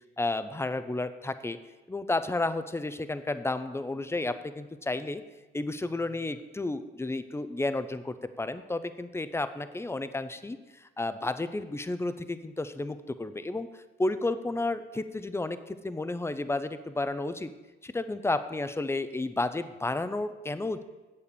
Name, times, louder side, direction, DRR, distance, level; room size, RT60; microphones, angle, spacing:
voice 1, 0.2-1.6 1.9-5.2 5.5-13.7 14.0-17.5 17.8-20.8, left 2 dB, 15° left, 11 dB, 0.7 m, -32 dB
8.5 x 8.0 x 6.9 m, 1.2 s
cardioid pair, 90°, 20 cm